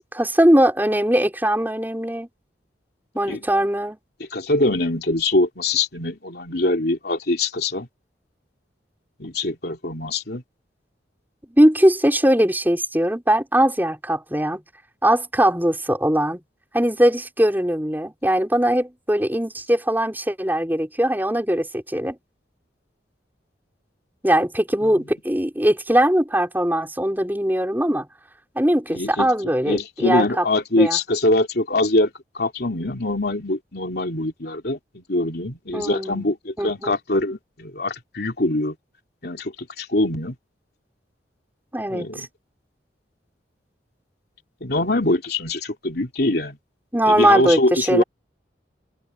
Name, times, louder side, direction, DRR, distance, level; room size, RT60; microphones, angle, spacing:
voice 1, 0.1-2.3 3.1-4.0 11.6-14.6 15.0-16.4 16.7-22.2 24.2-28.1 28.5-30.4 30.8-31.0 35.7-36.3 36.6-36.9 41.7-42.3 46.9-48.0, right 1 dB, 10° right, 4.5 m, -20 dB
voice 2, 4.3-7.9 9.2-10.4 28.9-29.3 29.6-32.1 32.3-38.7 39.2-40.3 41.9-42.3 44.6-46.6 47.1-48.0, left 2 dB, 60° left, 3.3 m, -23 dB
head